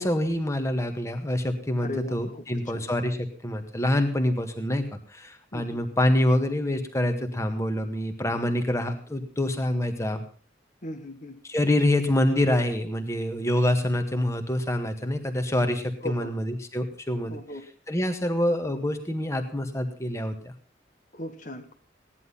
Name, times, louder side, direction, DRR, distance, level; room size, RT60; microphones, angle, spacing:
voice 1, 0.0-10.2 11.5-17.4 17.9-20.5, left 1 dB, 15° left, 6 dB, 1.9 m, -26 dB
voice 2, 1.8-2.8 5.5-5.8 10.8-11.4 16.0-16.3 17.3-17.6 21.1-21.8, left 1 dB, 45° left, 6 dB, 1.5 m, -37 dB
17.5 x 11.0 x 5.6 m, 0.40 s
head